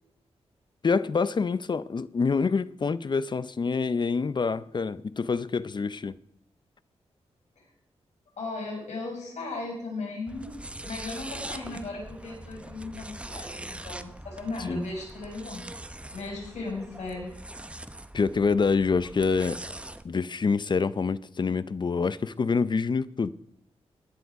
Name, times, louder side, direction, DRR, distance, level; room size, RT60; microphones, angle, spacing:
voice 1, 0.8-6.2 14.7-14.8 18.1-19.6 20.0-23.3, left 5 dB, 40° left, 0.6 m, -26 dB
voice 2, 8.4-10.5 10.8-15.6 16.1-17.3, left 3 dB, 85° left, 5.9 m, -36 dB
sound 1, 10.3-20.0, right 1 dB, 10° right, 0.8 m, -42 dB
16.0 x 10.5 x 4.8 m
wide cardioid pair, 100°, 11 cm